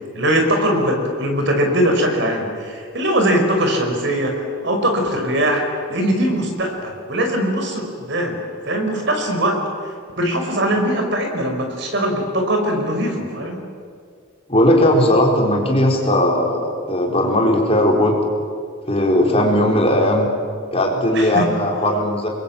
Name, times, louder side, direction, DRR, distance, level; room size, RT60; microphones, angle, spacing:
voice 1, 0.1-5.6 5.9-8.4 8.6-9.6 10.2-13.6 21.1-21.5, right 1 dB, 55° right, 3 dB, 4.9 m, -21 dB
voice 2, 14.5-18.1 18.9-20.3 20.7-22.3, left 1 dB, 25° left, 0 dB, 4.2 m, -17 dB
28.0 x 22.5 x 8.8 m, 2.2 s
head